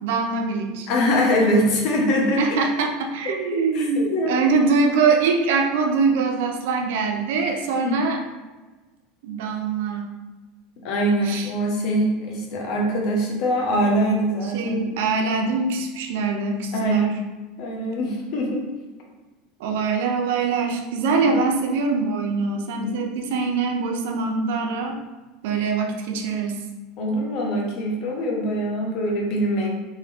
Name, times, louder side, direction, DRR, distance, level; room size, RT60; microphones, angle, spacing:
voice 1, 0.0-0.9 2.4-8.2 9.2-10.1 11.2-11.5 14.4-17.2 19.6-25.0 25.4-26.6, right 4 dB, 75° right, 3 dB, 0.6 m, -23 dB
voice 2, 0.9-2.4 3.7-4.4 7.8-8.0 10.8-14.8 16.7-17.1 17.6-18.6 21.3-21.4 27.0-29.7, equal, 55° left, 0 dB, 1.0 m, -23 dB
3.7 x 2.8 x 3.4 m, 1.2 s
supercardioid pair, 135°, 0 cm